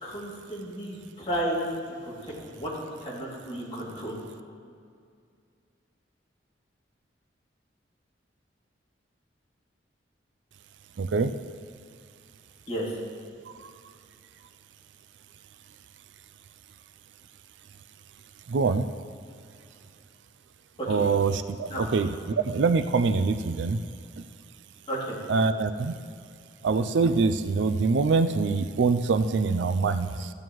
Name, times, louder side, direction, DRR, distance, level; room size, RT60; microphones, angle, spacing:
voice 1, 0.0-1.7 2.0-2.7 3.0-4.1 12.7-12.9 20.8-21.0 21.7-21.9 24.9-25.2, right 1 dB, 30° left, -6 dB, 2.5 m, -33 dB
voice 2, 11.0-11.4 13.6-13.7 18.5-18.9 20.9-23.8 24.2-24.3 25.3-26.0 26.6-30.3, right 4 dB, 70° right, 10 dB, 0.4 m, -24 dB
14.0 x 9.3 x 3.1 m, 2.3 s
head